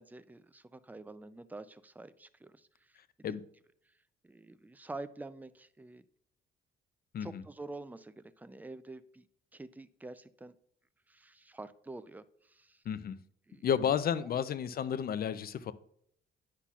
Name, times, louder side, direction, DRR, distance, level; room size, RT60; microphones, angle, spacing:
voice 1, 0.0-2.7 4.2-6.0 7.2-9.3 9.5-10.5 11.1-12.8 13.5-13.7 14.2-14.4, right 2 dB, 10° right, 14 dB, 0.4 m, -47 dB
voice 2, 12.9-13.2 13.6-15.7, left 8 dB, 50° left, 14 dB, 0.5 m, -32 dB
9.8 x 5.8 x 2.4 m, 0.66 s
cardioid pair, 90°, 20 cm